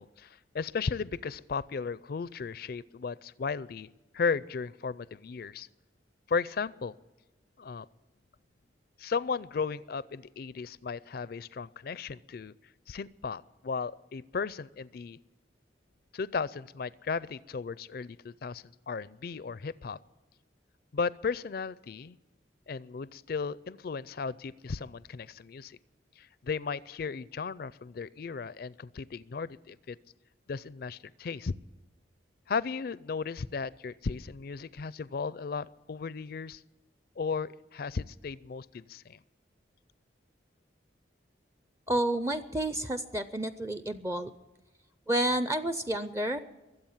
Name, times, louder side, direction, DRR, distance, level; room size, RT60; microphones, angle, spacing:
voice 1, 0.0-5.7 6.3-6.9 7.6-7.9 9.0-12.5 12.9-15.2 16.1-20.0 20.9-22.2 22.7-25.8 26.2-30.0 30.5-31.5 32.5-36.6 37.2-39.2, left 5 dB, 55° left, 19 dB, 0.4 m, -35 dB
voice 2, 41.9-44.3 45.1-46.4, right 1 dB, 15° right, 11 dB, 0.5 m, -30 dB
22.5 x 8.0 x 7.3 m, 1.1 s
head